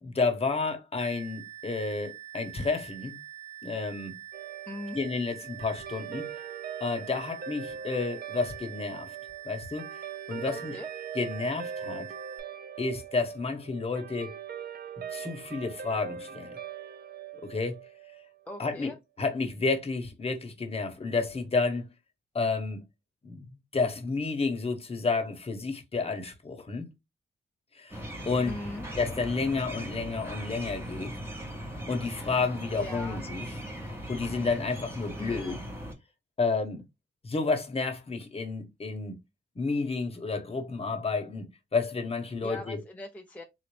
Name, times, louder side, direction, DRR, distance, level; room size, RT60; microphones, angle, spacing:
voice 1, 0.0-3.2 3.6-4.1 4.9-6.3 6.8-9.2 9.4-10.8 11.1-12.1 12.8-14.4 15.1-16.5 17.4-17.8 18.6-21.9 22.3-22.8 23.2-23.4 23.7-26.9 27.8-28.6 29.0-31.1 31.9-33.5 34.1-35.6 36.4-36.8 37.2-39.2 39.6-42.8, left 4 dB, 35° left, 1.0 m, -31 dB
sound 1, 1.0-12.4, right 12 dB, 40° right, 1.0 m, -45 dB
Guitar, 4.3-18.9, right 8 dB, 60° right, 0.5 m, -42 dB
voice 2, 4.7-5.0 10.5-10.9 18.5-18.9 28.5-28.8 32.8-33.2 35.2-35.6 42.4-43.4, left 1 dB, 10° left, 0.5 m, -40 dB
sound 2, 27.9-35.9, equal, 15° right, 1.2 m, -39 dB
3.9 x 2.5 x 3.2 m
wide cardioid pair, 130°, 19 cm